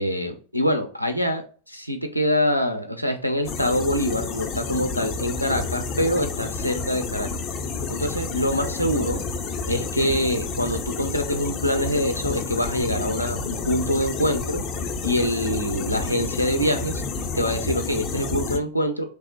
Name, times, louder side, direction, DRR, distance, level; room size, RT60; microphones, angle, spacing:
voice 1, 0.0-7.3 7.9-9.2 9.7-14.6 15.0-17.0 17.3-19.1, equal, 90° left, 6 dB, 0.4 m, -25 dB
sound 1, 3.4-18.6, left 4 dB, 35° left, 0.5 m, -30 dB
3.2 x 2.1 x 2.8 m, 0.39 s
figure-of-eight pair, 90°, 0 cm